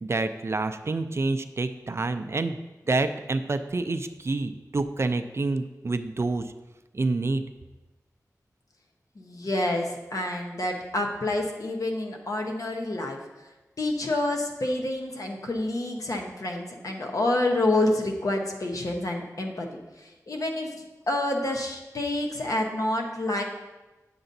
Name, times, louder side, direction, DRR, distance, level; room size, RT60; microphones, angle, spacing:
voice 1, 0.0-2.6 2.9-6.5 6.9-7.4, right 3 dB, 45° right, 8 dB, 0.4 m, -28 dB
voice 2, 9.2-13.5 13.8-19.7 20.0-20.7 21.1-23.4, left 1 dB, 65° left, 2 dB, 0.9 m, -28 dB
8.7 x 6.8 x 2.7 m, 1.1 s
wide cardioid pair, 85°, 6 cm